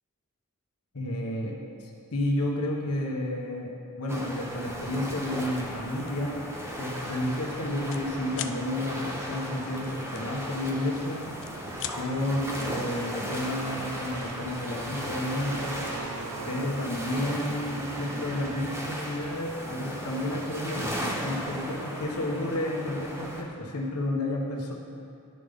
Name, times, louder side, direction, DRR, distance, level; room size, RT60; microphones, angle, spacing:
voice 1, 0.9-1.6 2.1-6.5 6.8-11.3 12.0-15.8 16.5-24.7, left 1 dB, 90° left, -1 dB, 1.0 m, -31 dB
sound 1, 4.1-23.4, equal, 10° right, 0.8 m, -36 dB
sound 2, 6.0-6.2 6.7-6.9 7.1-8.0 8.3-8.6 10.1-10.9 11.3-12.0, left 10 dB, 60° left, 0.4 m, -38 dB
sound 3, 10.8-19.5, right 3 dB, 70° right, 0.5 m, -42 dB
11.0 x 5.3 x 3.5 m, 2.5 s
head